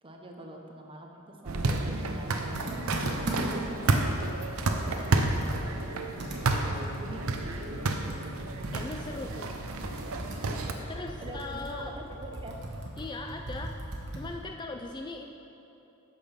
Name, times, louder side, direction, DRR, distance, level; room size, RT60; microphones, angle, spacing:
voice 1, 0.0-4.3 4.8-5.5 6.6-7.7 10.4-10.5 10.8-12.6, right 1 dB, 25° right, 1 dB, 0.8 m, -46 dB
sound 1, 1.4-10.7, right 2 dB, 75° right, 0.6 m, -30 dB
Computer keyboard, 2.5-3.7 4.2-4.3 4.6-14.4, right 1 dB, 55° right, 1.2 m, -39 dB
voice 2, 8.7-9.5 10.9-12.0 13.0-13.8 14.1-15.3, left 3 dB, 20° left, 3 dB, 0.3 m, -39 dB
8.4 x 5.9 x 5.7 m, 3.0 s
head